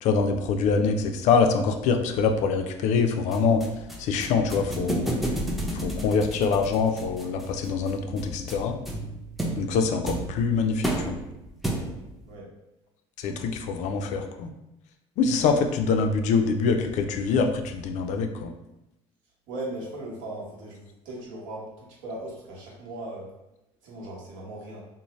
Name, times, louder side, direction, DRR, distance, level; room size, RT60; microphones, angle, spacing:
voice 1, 0.0-3.6 4.0-5.1 5.7-8.8 9.6-11.2 13.2-14.5 15.2-18.5, left 5 dB, 60° left, 6 dB, 0.4 m, -24 dB
sound 1, 3.3-12.2, right 1 dB, ahead, 0.5 m, -32 dB
voice 2, 12.2-12.6 19.5-23.3 23.8-24.9, right 1 dB, 70° right, -3 dB, 1.0 m, -38 dB
2.7 x 2.0 x 3.0 m, 0.91 s
supercardioid pair, 95°, 14 cm